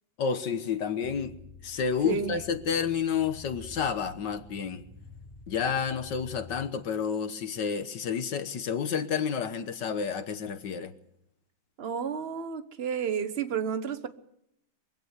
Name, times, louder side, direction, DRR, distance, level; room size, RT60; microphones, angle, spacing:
voice 1, 0.2-1.4 1.6-4.8 5.5-10.9, left 7 dB, 65° left, 1.7 m, -30 dB
sound 1, 1.0-6.7, left 3 dB, 10° right, 7.9 m, -49 dB
voice 2, 11.8-14.1, right 7 dB, 35° right, 1.1 m, -31 dB
23.5 x 16.0 x 8.2 m
omnidirectional pair, 2.2 m